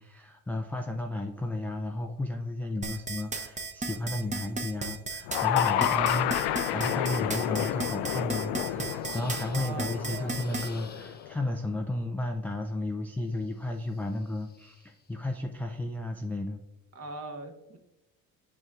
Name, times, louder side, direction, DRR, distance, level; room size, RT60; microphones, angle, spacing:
voice 1, 0.0-6.3 6.7-16.6, left 1 dB, 5° left, 3 dB, 0.3 m, -33 dB
sound 1, 2.8-10.7, right 3 dB, 15° right, 0.8 m, -35 dB
sound 2, 5.2-11.5, left 12 dB, 60° left, 0.5 m, -30 dB
voice 2, 5.7-6.3 9.5-10.4 16.9-17.8, right 2 dB, 30° right, 5 dB, 1.2 m, -40 dB
sound 3, 9.0-9.8 10.2-11.5 13.2-15.1, left 4 dB, 20° left, 0.9 m, -54 dB
7.7 x 6.2 x 2.4 m, 0.94 s
hypercardioid pair, 65°, 45 cm